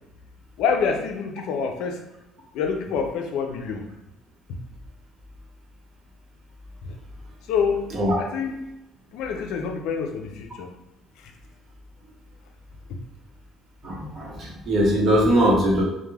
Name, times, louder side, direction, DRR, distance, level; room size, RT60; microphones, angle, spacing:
voice 1, 0.6-2.0 2.5-3.9 6.8-7.0 7.5-7.9 8.2-8.6 9.1-10.7 11.2-11.3 12.9-13.0, left 6 dB, 75° left, 3 dB, 0.4 m, -26 dB
voice 2, 13.8-15.8, equal, 40° right, -2 dB, 0.8 m, -21 dB
2.2 x 2.1 x 3.2 m, 0.90 s
cardioid pair, 120°, 0 cm